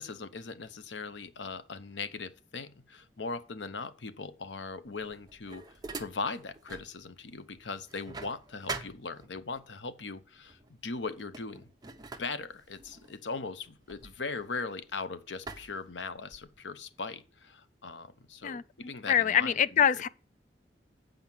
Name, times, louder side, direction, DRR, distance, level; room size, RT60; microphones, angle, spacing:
voice 1, 0.0-5.6 6.0-11.7 12.2-20.0, left 4 dB, 90° left, 0.8 m, -39 dB
sound 1, 4.9-6.9 7.3-9.6 10.5-10.7 11.1-14.9 15.5-16.6, right 4 dB, 25° right, 0.9 m, -44 dB
voice 2, 18.4-20.1, left 9 dB, 45° left, 0.3 m, -26 dB
7.9 x 5.2 x 7.2 m
head